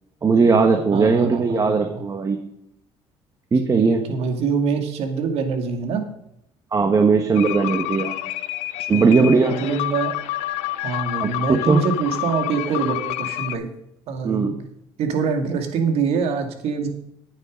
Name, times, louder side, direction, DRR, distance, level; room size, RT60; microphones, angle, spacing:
voice 1, 0.2-2.4 3.5-4.0 6.7-8.1 8.9-9.6 11.2-11.8 14.2-14.5, right 4 dB, 30° right, 5 dB, 1.4 m, -18 dB
voice 2, 0.9-2.0 3.7-6.0 8.8-10.1 10.8-13.7 14.1-14.6 15.0-17.0, right 5 dB, 70° right, 5 dB, 2.2 m, -25 dB
sound 1, 7.4-13.6, left 16 dB, 80° left, 0.6 m, -28 dB
9.5 x 9.0 x 5.2 m, 0.79 s
supercardioid pair, 90°, 11 cm